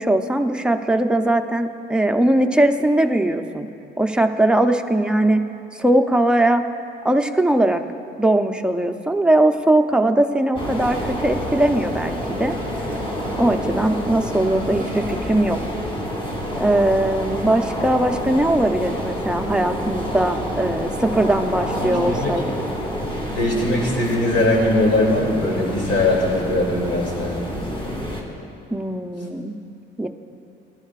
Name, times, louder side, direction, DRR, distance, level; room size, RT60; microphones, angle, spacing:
voice 1, 0.0-3.7 4.0-5.4 5.7-6.6 7.0-7.8 8.2-12.6 13.4-15.6 16.5-22.4 28.7-29.5 30.0-30.1, right 1 dB, 5° right, 5 dB, 0.6 m, -20 dB
sound 1, 10.5-28.2, equal, 25° left, 2.5 m, -28 dB
voice 2, 21.8-22.4 23.3-27.6, left 1 dB, 65° left, -2 dB, 2.8 m, -21 dB
18.0 x 12.0 x 2.5 m, 2.6 s
cardioid pair, 90°, 20 cm